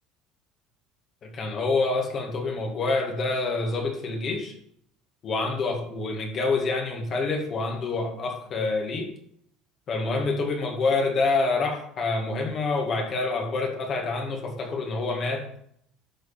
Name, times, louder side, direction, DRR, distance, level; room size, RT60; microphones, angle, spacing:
voice 1, 1.2-4.5 5.2-9.1 9.9-15.4, left 3 dB, 35° left, 2 dB, 1.9 m, -27 dB
12.5 x 4.7 x 4.3 m, 0.67 s
cardioid pair, 155°, 0 cm